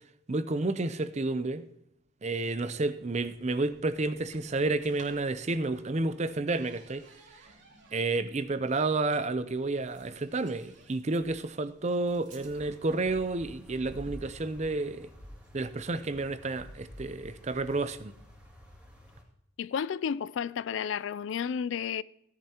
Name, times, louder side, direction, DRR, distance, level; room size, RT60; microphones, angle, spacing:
voice 1, 0.3-1.7 2.2-7.0 7.9-15.1 15.5-18.1, right 2 dB, 35° right, 0.6 m, -30 dB
sound 1, 3.0-18.0, right 1 dB, 60° right, 2.5 m, -55 dB
sound 2, 12.4-19.2, equal, 5° right, 2.4 m, -51 dB
voice 2, 19.6-22.0, left 7 dB, 65° left, 0.3 m, -32 dB
16.5 x 10.5 x 2.9 m
head